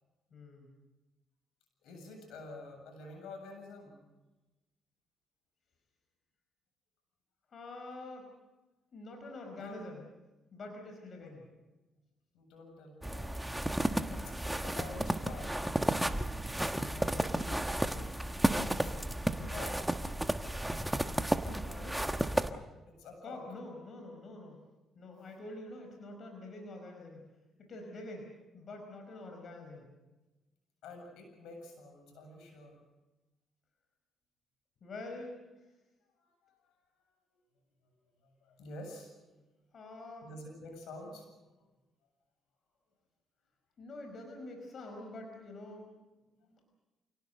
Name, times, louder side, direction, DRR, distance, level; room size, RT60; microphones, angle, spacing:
voice 1, 0.3-0.7 7.5-8.3 8.9-10.1 10.5-11.5 16.8-17.3 21.4-22.0 23.2-24.6 24.9-27.3 27.6-29.9 34.8-35.4 39.7-40.3 43.8-45.9 46.4-46.6, left 2 dB, 50° left, 3 dB, 5.0 m, -46 dB
voice 2, 1.8-4.0 9.5-9.8 11.2-11.4 12.3-13.3 14.1-15.5 18.6-18.9 19.3-19.9 22.9-23.4 30.8-32.7 36.2-36.3 38.4-39.2 40.2-41.3, left 2 dB, 85° left, 3 dB, 7.6 m, -48 dB
sound 1, 13.0-22.5, right 1 dB, 5° right, 1.3 m, -33 dB
28.0 x 18.5 x 6.6 m, 1.1 s
cardioid pair, 90°, 0 cm